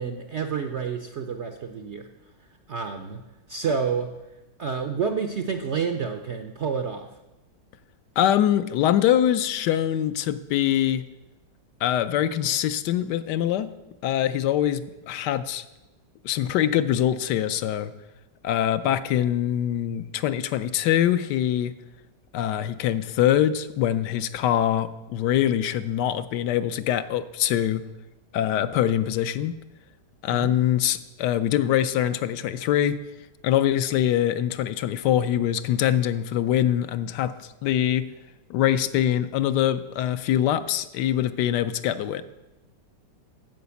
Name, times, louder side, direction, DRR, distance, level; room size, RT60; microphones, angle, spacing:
voice 1, 0.0-2.1 2.7-3.2 3.5-4.2 4.6-7.1 30.3-30.6, right 6 dB, 65° right, 7 dB, 0.7 m, -29 dB
voice 2, 8.2-11.0 11.8-13.7 14.0-15.6 16.2-17.9 18.4-21.7 22.3-27.8 28.3-29.5 30.2-33.0 33.4-38.1 38.5-42.2, left 11 dB, 75° left, 12 dB, 1.2 m, -23 dB
9.3 x 7.8 x 6.9 m, 1.0 s
omnidirectional pair, 1.9 m